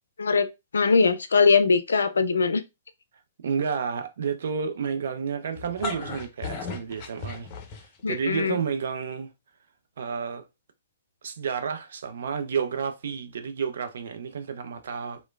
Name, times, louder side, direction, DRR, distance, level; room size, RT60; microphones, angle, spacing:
voice 1, 0.7-2.6 8.0-8.6, left 4 dB, 75° left, 0.4 m, -21 dB
voice 2, 3.4-7.5 8.1-9.3 10.0-10.5 11.2-15.2, right 6 dB, 65° right, 0.5 m, -30 dB
sound 1, 5.6-8.2, left 3 dB, 35° left, 0.6 m, -35 dB
3.0 x 2.1 x 2.3 m
figure-of-eight pair, 120°, 0 cm